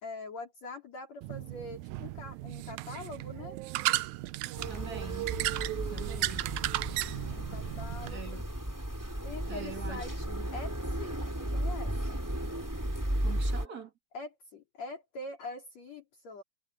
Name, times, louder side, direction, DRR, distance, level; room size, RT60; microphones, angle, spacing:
voice 1, 0.0-3.6 7.3-8.5 9.2-12.1 14.1-16.4, left 3 dB, 50° left, 4.2 m, -44 dB
sound 1, 1.2-8.1, right 17 dB, 85° right, 1.7 m, -35 dB
sound 2, 4.6-13.7, right 1 dB, 5° right, 3.5 m, -35 dB
voice 2, 4.7-5.3 5.9-6.4 8.1-8.5 9.5-10.5 13.2-13.9, right 7 dB, 35° right, 1.8 m, -44 dB
omnidirectional pair, 4.0 m